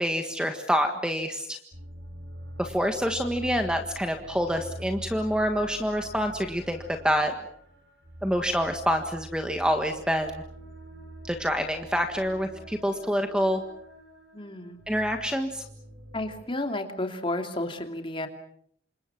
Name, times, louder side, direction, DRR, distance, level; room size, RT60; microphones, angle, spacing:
voice 1, 0.0-1.6 2.6-6.8 7.0-7.3 8.2-10.4 11.2-13.6 14.9-15.6, equal, 5° right, 5 dB, 1.5 m, -27 dB
sound 1, 1.7-16.4, right 1 dB, 65° right, 6.4 m, -44 dB
voice 2, 14.3-14.8 16.1-18.3, left 1 dB, 25° left, 5 dB, 2.7 m, -32 dB
28.0 x 26.5 x 6.0 m, 0.66 s
head